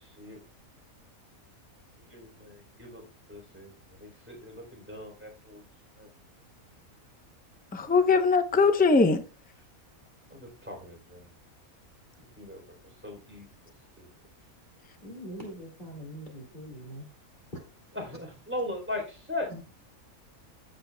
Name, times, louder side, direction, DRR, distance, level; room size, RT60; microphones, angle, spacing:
voice 1, 2.0-3.0 3.3-3.7 4.0-5.6 6.0-6.1 10.3-11.2 12.4-12.6 13.0-13.5 14.0-14.1 17.9-19.6, left 1 dB, 10° right, 3.5 m, -38 dB
voice 2, 7.7-9.2, left 4 dB, 10° left, 0.5 m, -21 dB
voice 3, 15.0-17.1 19.5-19.6, right 1 dB, 35° left, 2.5 m, -42 dB
15.5 x 7.8 x 2.3 m
omnidirectional pair, 1.5 m